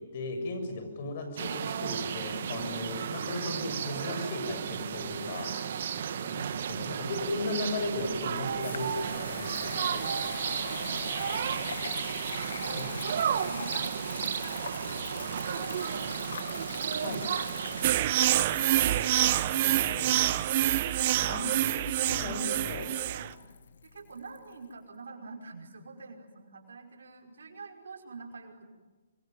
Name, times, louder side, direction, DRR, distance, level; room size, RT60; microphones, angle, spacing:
voice 1, 0.0-5.5 6.2-10.4 11.5-11.7 12.7-12.9 16.9-17.3 19.9-20.2 21.3-22.9, left 2 dB, 45° left, 7 dB, 7.0 m, -36 dB
sound 1, 1.4-17.9, right 8 dB, 55° right, 2.0 m, -33 dB
voice 2, 5.3-5.9 6.4-6.9 10.0-10.1 10.4-10.7 11.2-12.0 12.5-12.8 13.3-14.1 14.7-16.2 16.7-19.8 20.8-21.5 23.1-23.3 23.9-28.6, right 4 dB, 80° right, 4 dB, 5.5 m, -46 dB
sound 2, 6.5-24.4, left 6 dB, 70° left, 1.6 m, -43 dB
sound 3, 17.8-23.3, right 14 dB, 35° right, 0.9 m, -26 dB
26.0 x 23.0 x 9.5 m, 1.3 s
hypercardioid pair, 160°, 0 cm